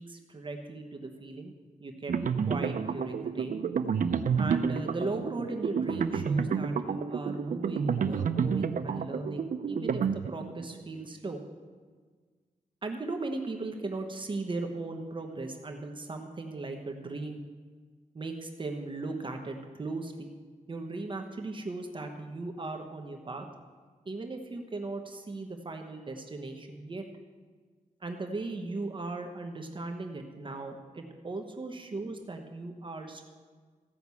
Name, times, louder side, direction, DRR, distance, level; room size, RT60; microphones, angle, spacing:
voice 1, 0.0-1.5 1.8-2.1 2.5-3.6 4.4-11.4 12.8-17.4 18.1-20.3 20.7-23.5 24.0-27.1 28.0-33.3, right 3 dB, 35° right, 3 dB, 1.1 m, -37 dB
sound 1, 2.1-10.6, right 6 dB, 70° right, 0.6 m, -30 dB
15.0 x 6.0 x 8.3 m, 1.5 s
wide cardioid pair, 145°, 14 cm